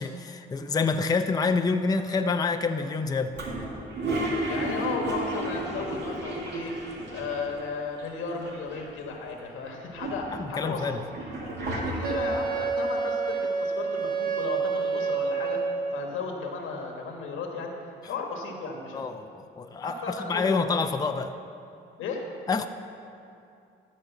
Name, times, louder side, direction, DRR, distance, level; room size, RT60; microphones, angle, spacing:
voice 1, 0.0-3.4 10.3-11.0 18.9-21.3 22.5-22.7, left 4 dB, 20° left, 7 dB, 0.5 m, -27 dB
Toilet flush, 3.3-7.7 8.0-8.1 8.3-9.1 9.6-12.5, right 1 dB, 60° right, 2.1 m, -32 dB
voice 2, 4.5-6.7 7.1-11.0 11.6-15.6 15.9-17.7 18.0-19.0 19.8-20.6 22.0-22.2, left 4 dB, 85° left, 2 dB, 1.5 m, -34 dB
Wind instrument woodwind instrument, 12.0-16.2, right 4 dB, 45° right, 0.7 m, -28 dB
13.5 x 5.2 x 7.2 m, 2.5 s
cardioid pair, 90°, 20 cm